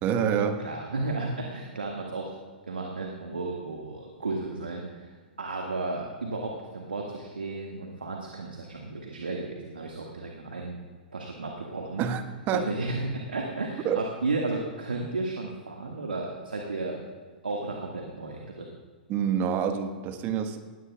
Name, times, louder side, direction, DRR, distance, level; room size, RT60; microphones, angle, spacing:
voice 1, 0.0-0.6 12.0-12.7 13.8-14.0 19.1-20.6, right 8 dB, 35° right, 8 dB, 1.3 m, -27 dB
voice 2, 0.6-2.3 2.7-5.1 5.4-10.8 11.1-12.0 12.5-17.0 17.4-18.7, right 3 dB, 80° right, 0 dB, 1.8 m, -33 dB
19.5 x 16.5 x 2.3 m, 1.5 s
figure-of-eight pair, 110°, 5 cm